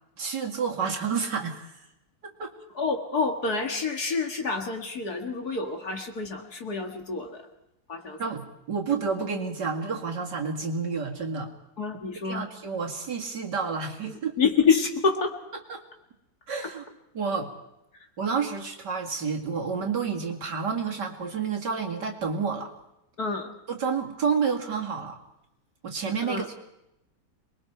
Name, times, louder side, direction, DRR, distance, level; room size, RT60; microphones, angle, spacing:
voice 1, 0.2-1.7 2.2-2.6 8.2-11.5 12.2-14.3 15.7-15.8 16.5-16.8 17.1-17.5 18.2-22.7 23.7-25.2 25.8-26.6, right 5 dB, 60° right, 1 dB, 2.8 m, -29 dB
voice 2, 2.8-7.5 7.9-8.2 11.8-12.5 14.0-15.4 23.2-23.5 26.2-26.5, left 5 dB, 50° left, 4 dB, 2.5 m, -27 dB
27.5 x 22.0 x 4.6 m, 0.88 s
omnidirectional pair, 2.2 m